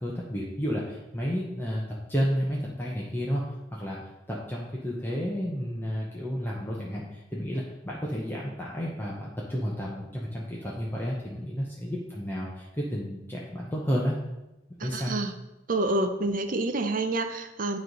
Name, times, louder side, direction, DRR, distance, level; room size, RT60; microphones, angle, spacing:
voice 1, 0.0-3.4 3.7-4.0 4.3-14.2 14.8-15.1, equal, 10° left, -5 dB, 0.8 m, -31 dB
voice 2, 14.8-15.3 15.7-17.8, right 2 dB, 45° right, 7 dB, 0.5 m, -28 dB
8.5 x 3.2 x 5.2 m, 0.98 s
head